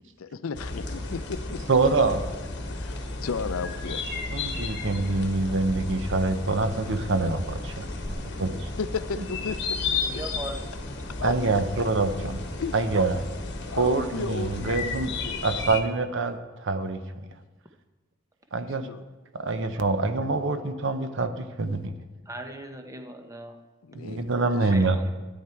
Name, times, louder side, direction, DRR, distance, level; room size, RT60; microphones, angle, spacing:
voice 1, 0.2-1.6 2.7-4.0 8.8-10.2 11.2-11.4 12.6-12.7 13.7-15.4 18.8-19.0 23.8-24.9, left 5 dB, 80° left, 13 dB, 0.5 m, -34 dB
sound 1, 0.5-15.8, left 3 dB, 55° left, 1.2 m, -33 dB
voice 2, 1.7-2.2 4.3-8.7 11.2-12.4 12.7-13.2 13.8-15.1 15.4-17.0 18.5-18.9 19.3-21.9 23.9-25.0, right 3 dB, 60° right, 9 dB, 0.9 m, -25 dB
voice 3, 10.0-10.6 13.7-13.8 22.3-23.6 24.6-25.1, right 1 dB, 15° right, 5 dB, 0.9 m, -39 dB
13.0 x 9.3 x 4.5 m, 1.2 s
head